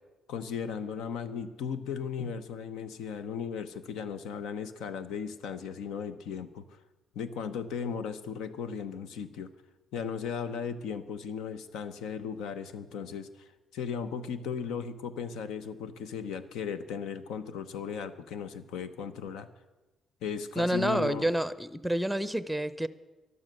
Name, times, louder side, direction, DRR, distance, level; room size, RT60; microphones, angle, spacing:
voice 1, 0.3-6.6 7.1-9.5 9.9-19.5 20.2-21.3, left 6 dB, 85° left, 11 dB, 0.9 m, -36 dB
voice 2, 20.6-22.9, right 1 dB, ahead, 15 dB, 0.7 m, -28 dB
12.0 x 12.0 x 6.7 m, 1.1 s
cardioid pair, 90°, 0 cm